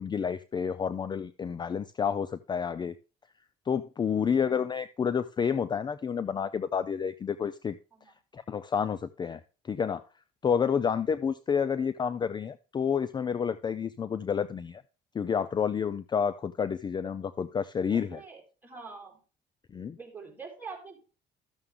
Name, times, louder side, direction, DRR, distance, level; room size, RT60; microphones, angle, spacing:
voice 1, 0.0-3.0 3.7-7.8 8.3-9.4 9.7-10.0 10.4-14.8 15.1-18.2 19.7-20.0, left 7 dB, 25° left, 0.4 m, -29 dB
voice 2, 17.9-19.2 20.0-21.0, right 4 dB, 10° right, 4.0 m, -45 dB
13.0 x 6.8 x 3.6 m
cardioid pair, 110°, 17 cm